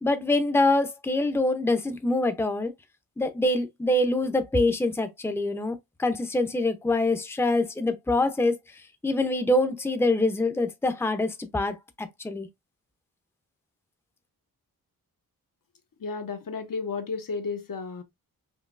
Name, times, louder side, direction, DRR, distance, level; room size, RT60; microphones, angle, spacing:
voice 1, 0.0-2.7 3.2-8.6 9.0-12.5, left 2 dB, 5° left, 0.7 m, -25 dB
voice 2, 16.0-18.0, left 4 dB, 60° left, 0.9 m, -33 dB
5.4 x 2.9 x 2.5 m
wide cardioid pair, 85°, 37 cm